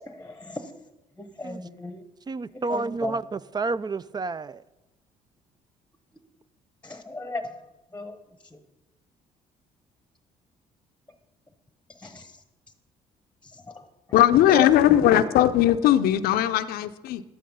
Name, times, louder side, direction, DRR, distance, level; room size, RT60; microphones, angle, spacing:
voice 1, 0.1-0.8 1.2-2.0 2.5-3.2 6.8-7.6 7.9-8.2 8.5-8.6 11.9-12.4 13.4-13.8 14.5-15.1, left 2 dB, 10° left, 1.0 m, -36 dB
voice 2, 2.3-4.6 14.5-14.6, right 3 dB, 25° right, 0.4 m, -30 dB
voice 3, 14.1-17.2, left 12 dB, 75° left, 0.6 m, -19 dB
11.5 x 8.6 x 5.5 m
supercardioid pair, 70°, 16 cm